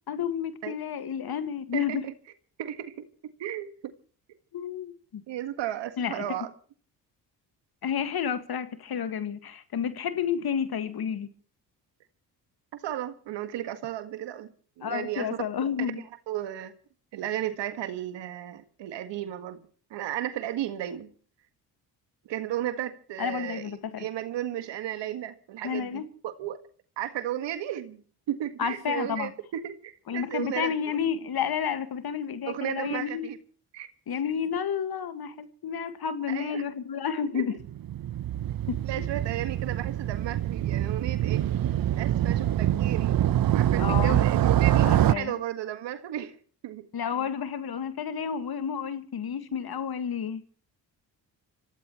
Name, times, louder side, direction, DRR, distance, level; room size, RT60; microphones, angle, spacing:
voice 1, 0.1-2.0 4.5-5.2 6.0-6.2 7.8-11.3 14.8-16.0 23.2-24.1 25.6-26.1 28.6-29.3 30.1-33.3 34.1-37.6 38.7-39.1 43.8-44.2 44.8-45.4 46.9-50.4, left 7 dB, 55° left, 1.9 m, -31 dB
voice 2, 1.7-2.1 2.6-3.1 3.4-3.9 5.3-6.5 12.7-14.5 14.8-15.4 16.3-16.7 17.1-19.6 19.9-21.1 22.3-23.7 24.0-26.6 27.0-28.0 28.3-31.0 32.5-33.4 33.7-33.9 36.3-36.6 37.3-37.6 38.8-41.4 42.0-43.2 43.5-46.4 46.6-46.8, right 12 dB, 75° right, 1.8 m, -34 dB
Motorcycle, 37.6-45.1, right 12 dB, 55° right, 0.9 m, -25 dB
26.0 x 16.5 x 3.1 m
supercardioid pair, 55°, 43 cm